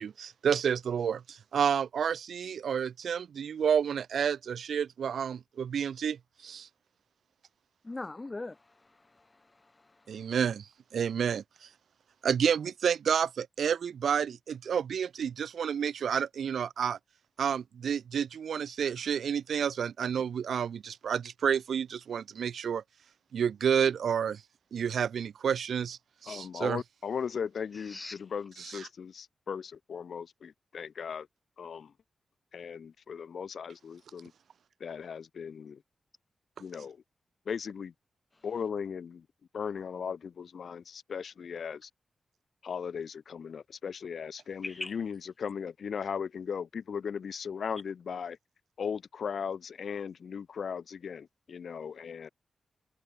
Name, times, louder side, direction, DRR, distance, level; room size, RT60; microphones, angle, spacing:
voice 1, 0.0-6.7 10.1-11.7 12.2-17.0 17.4-22.8 23.3-24.4 24.7-26.8, right 7 dB, 80° right, 1.6 m, -30 dB
voice 2, 7.8-10.3 27.9-28.2 44.6-44.9, left 2 dB, 20° left, 3.0 m, -42 dB
voice 3, 26.3-31.3 31.6-31.9 32.5-34.3 34.8-35.8 36.6-37.0 37.5-37.9 38.4-39.3 39.5-41.9 42.6-48.4 48.8-52.3, left 6 dB, 65° left, 4.5 m, -37 dB
wide cardioid pair, 135°, 0 cm